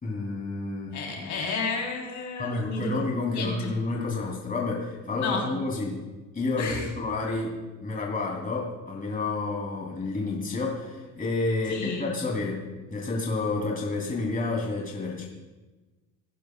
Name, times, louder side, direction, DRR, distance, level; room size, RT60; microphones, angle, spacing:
voice 1, 0.0-1.3 2.4-6.0 6.3-15.3, left 3 dB, 25° left, -2 dB, 3.2 m, -30 dB
voice 2, 0.9-2.9 3.3-3.7 5.2-5.5 6.6-6.9 11.7-12.1, left 4 dB, 55° left, 0 dB, 3.8 m, -31 dB
20.0 x 10.0 x 2.4 m, 1.2 s
supercardioid pair, 85°, 35 cm